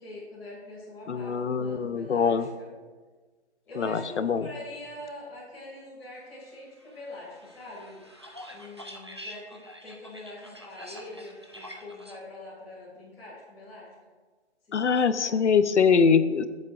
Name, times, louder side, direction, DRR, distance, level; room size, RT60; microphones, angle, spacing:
voice 1, 0.0-2.7 3.6-8.0 8.5-13.9 14.7-15.5, left 1 dB, 5° left, -13 dB, 2.5 m, -44 dB
voice 2, 1.1-2.5 3.8-4.4 14.7-16.4, left 6 dB, 80° left, 12 dB, 0.8 m, -23 dB
sound 1, 6.8-12.2, equal, 25° right, 0.4 m, -46 dB
17.0 x 7.4 x 2.5 m, 1.4 s
hypercardioid pair, 170°, 34 cm